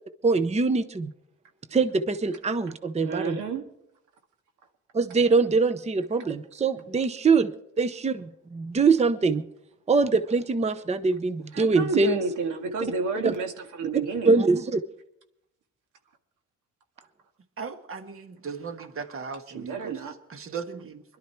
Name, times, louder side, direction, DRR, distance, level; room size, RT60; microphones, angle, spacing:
voice 1, 0.2-1.1 1.7-3.4 4.9-7.5 7.8-9.5 9.9-12.2 13.2-13.3 14.3-14.8, right 4 dB, 20° right, 0.7 m, -23 dB
voice 2, 3.0-3.7 11.5-14.4 19.5-20.2, right 4 dB, 85° right, 1.8 m, -30 dB
voice 3, 17.6-19.9 20.3-21.0, right 5 dB, 45° right, 1.5 m, -37 dB
21.5 x 12.0 x 4.5 m
cardioid pair, 90°, 30 cm